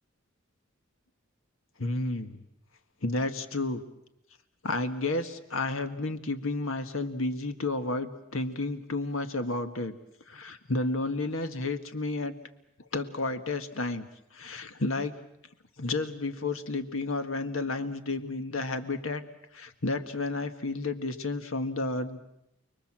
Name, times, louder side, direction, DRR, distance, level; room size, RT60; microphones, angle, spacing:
voice 1, 1.8-2.4 3.0-3.8 4.6-10.0 10.3-12.4 12.9-14.1 14.3-15.2 15.8-19.2 19.5-22.2, left 2 dB, 75° left, 8 dB, 1.8 m, -31 dB
30.0 x 22.0 x 7.6 m, 0.84 s
head